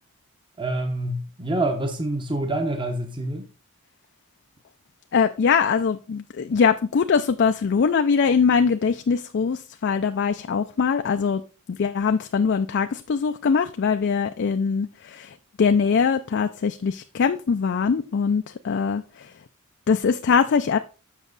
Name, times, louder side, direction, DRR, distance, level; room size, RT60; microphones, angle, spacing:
voice 1, 0.6-3.5, right 1 dB, 20° right, 0.9 m, -26 dB
voice 2, 5.1-11.4 11.7-19.3 19.9-20.8, left 6 dB, 50° left, 0.4 m, -22 dB
7.2 x 5.9 x 4.0 m
head